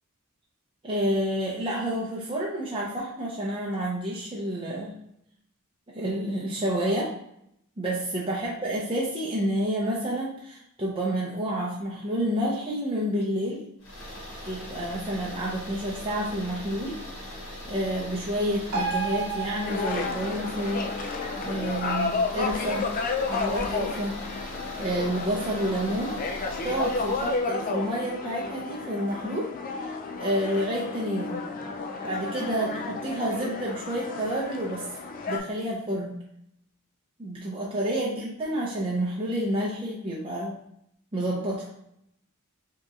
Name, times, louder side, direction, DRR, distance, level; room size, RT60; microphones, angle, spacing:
voice 1, 0.8-5.0 5.9-7.1 7.8-13.6 14.4-17.0 17.6-21.1 21.4-22.9 23.3-24.2 24.8-26.1 26.6-29.5 29.8-29.9 30.2-31.4 32.0-34.8 35.3-36.1 37.2-40.5 41.1-41.7, equal, 25° right, -5 dB, 0.6 m, -29 dB
sound 1, 13.8-27.5, left 1 dB, 65° left, 1.5 m, -40 dB
sound 2, 18.7-25.7 26.0-26.1, right 4 dB, 70° right, 0.8 m, -36 dB
sound 3, 19.7-35.4, left 4 dB, 40° left, 0.4 m, -32 dB
5.2 x 2.9 x 2.4 m, 0.74 s
head